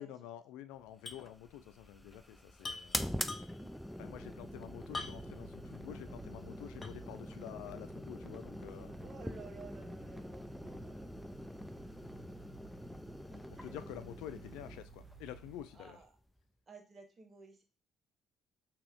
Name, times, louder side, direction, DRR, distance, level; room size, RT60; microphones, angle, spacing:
voice 1, 0.0-3.1 4.0-9.0 13.3-16.0, left 11 dB, 85° left, 10 dB, 0.4 m, -49 dB
sound 1, 1.1-1.3 1.6-1.7 2.6-3.8 4.9-5.5 6.0-6.1 6.8-7.2, left 3 dB, 30° left, 0.7 m, -44 dB
sound 2, 1.1-16.4, equal, 5° left, 0.4 m, -45 dB
sound 3, 4.2-15.6, right 5 dB, 60° right, 1.4 m, -56 dB
voice 2, 9.0-11.0 11.9-12.0 13.3-13.7 15.7-16.1 16.7-17.6, right 4 dB, 40° right, 4 dB, 0.9 m, -54 dB
3.4 x 2.9 x 3.5 m, 0.31 s
supercardioid pair, 60°, 0 cm